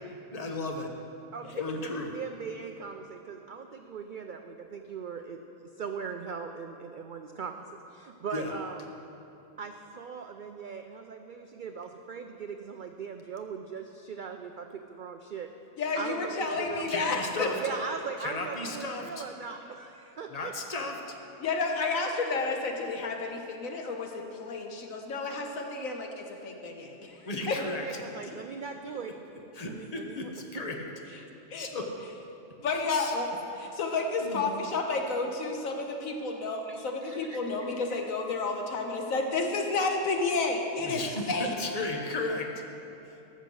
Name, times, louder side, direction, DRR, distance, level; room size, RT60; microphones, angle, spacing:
voice 1, 0.3-0.9 1.6-2.1 8.3-8.5 16.9-17.6 18.2-19.2 20.3-21.0 27.2-27.8 29.5-30.9 31.5-31.9 32.9-33.1 34.2-34.5 40.8-42.5, left 2 dB, 30° left, 2 dB, 1.0 m, -35 dB
voice 2, 1.3-5.4 5.8-7.6 7.9-8.8 9.6-15.5 15.9-17.2 17.6-20.5 27.8-29.1 29.6-30.3 36.6-37.7, right 5 dB, 75° right, 5 dB, 0.4 m, -40 dB
voice 3, 15.8-17.5 21.4-27.2 27.5-27.6 31.5-31.7 32.6-33.3 33.6-41.0 41.3-41.5, left 3 dB, 75° left, 3 dB, 1.5 m, -31 dB
13.5 x 6.5 x 6.3 m, 2.9 s
omnidirectional pair, 1.4 m